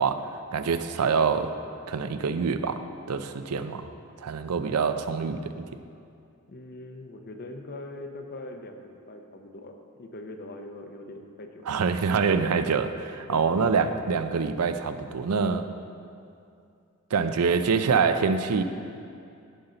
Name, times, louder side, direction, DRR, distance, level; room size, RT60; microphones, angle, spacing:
voice 1, 0.0-1.5 1.9-2.8 3.1-3.9 4.2-5.6 11.7-15.7 17.1-18.6, right 5 dB, 85° right, 10 dB, 0.5 m, -25 dB
voice 2, 6.5-11.6 13.3-13.6, left 2 dB, 45° left, 4 dB, 0.8 m, -42 dB
15.5 x 5.7 x 3.9 m, 2.5 s
head